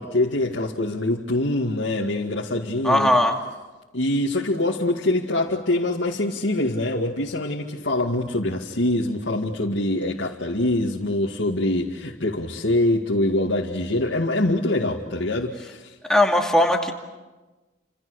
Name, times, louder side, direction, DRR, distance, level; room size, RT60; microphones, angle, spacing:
voice 1, 0.0-3.1 3.9-15.9, left 1 dB, 85° left, 2.2 m, -24 dB
voice 2, 2.8-3.3 16.1-16.9, left 1 dB, 5° left, 2.4 m, -18 dB
30.0 x 27.5 x 6.6 m
head